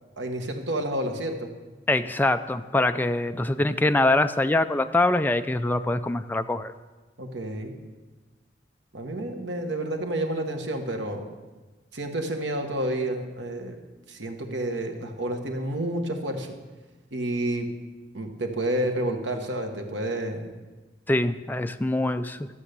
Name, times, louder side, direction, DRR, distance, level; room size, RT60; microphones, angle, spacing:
voice 1, 0.2-1.5 7.2-7.8 8.9-11.2 11.9-13.8 14.1-16.5 17.1-17.7 18.1-20.5, right 1 dB, 80° right, 4 dB, 1.4 m, -30 dB
voice 2, 1.9-6.7 21.1-22.5, left 2 dB, 10° left, 8 dB, 0.3 m, -24 dB
12.5 x 7.3 x 6.8 m, 1.2 s
head